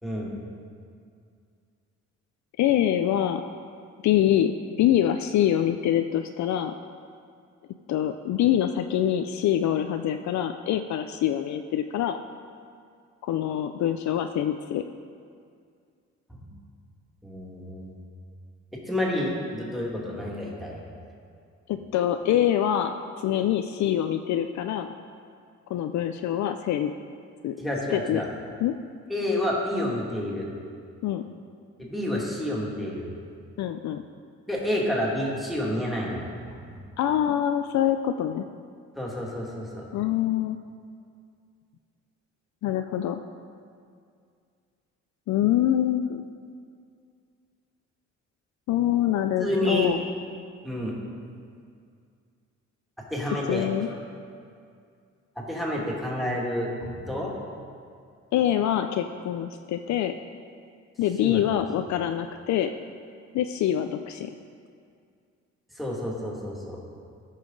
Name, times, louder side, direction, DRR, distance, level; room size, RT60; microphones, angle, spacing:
voice 1, 0.0-0.4 16.3-16.5 17.2-17.9 18.7-20.8 27.6-28.3 29.1-30.5 31.8-33.1 34.5-36.3 36.5-36.6 39.0-39.9 49.4-49.9 50.6-51.0 53.1-53.7 55.4-57.3 61.2-61.4 65.8-66.8, left 1 dB, ahead, -4 dB, 2.2 m, -29 dB
voice 2, 2.6-3.4 4.0-4.5 4.8-6.7 7.9-12.2 13.2-14.8 21.7-24.9 25.7-26.9 27.4-27.6 27.9-28.2 28.6-28.7 31.0-31.2 33.6-34.0 37.0-38.5 39.9-40.6 42.6-43.2 45.3-46.3 48.7-50.0 53.5-53.9 58.3-60.1 61.0-62.7 63.3-64.3, left 11 dB, 70° left, 7 dB, 0.4 m, -25 dB
14.0 x 5.7 x 3.9 m, 2.3 s
cardioid pair, 90°, 30 cm